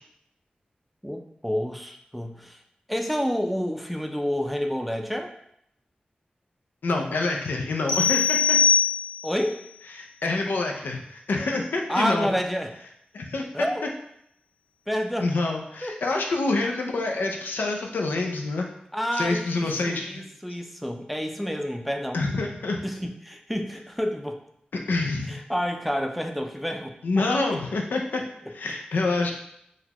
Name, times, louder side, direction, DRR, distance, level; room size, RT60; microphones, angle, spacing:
voice 1, 1.0-2.6 2.9-5.3 9.2-9.6 11.9-12.7 13.5-13.8 14.9-15.3 15.8-15.9 18.9-22.3 22.8-24.4 25.3-27.3, equal, ahead, 4 dB, 0.4 m, -29 dB
voice 2, 6.8-8.6 10.0-12.3 13.1-13.7 15.2-18.7 19.1-20.2 22.1-22.8 24.9-25.4 27.0-28.2 28.5-29.3, left 3 dB, 90° left, 2 dB, 0.4 m, -27 dB
sound 1, 7.9-9.4, left 6 dB, 45° left, 0.9 m, -21 dB
3.9 x 2.1 x 2.9 m, 0.74 s
cardioid pair, 40°, 3 cm